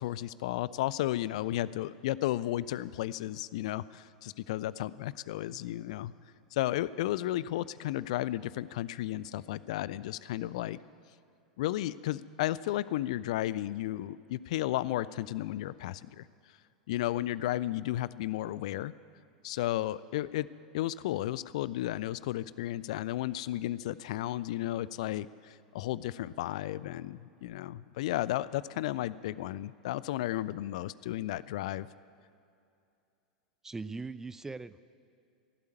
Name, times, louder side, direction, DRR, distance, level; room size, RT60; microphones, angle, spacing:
voice 1, 0.0-6.1 6.5-10.8 11.6-16.3 16.9-18.9 19.4-20.5 20.7-31.9, left 14 dB, 55° left, 18 dB, 0.3 m, -33 dB
voice 2, 33.6-34.8, right 3 dB, 10° right, 15 dB, 0.4 m, -40 dB
16.0 x 8.3 x 9.5 m, 2.5 s
figure-of-eight pair, 85°, 4 cm